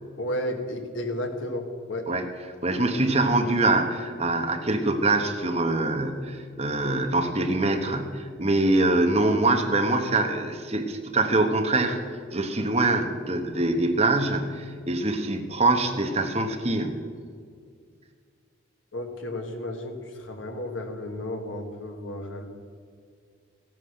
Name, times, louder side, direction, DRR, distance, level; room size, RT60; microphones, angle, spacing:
voice 1, 0.2-2.0 18.9-22.5, left 1 dB, 80° left, 4 dB, 1.8 m, -33 dB
voice 2, 2.6-12.0 12.3-17.0, right 2 dB, 35° right, 5 dB, 1.2 m, -24 dB
15.0 x 9.2 x 6.6 m, 2.1 s
head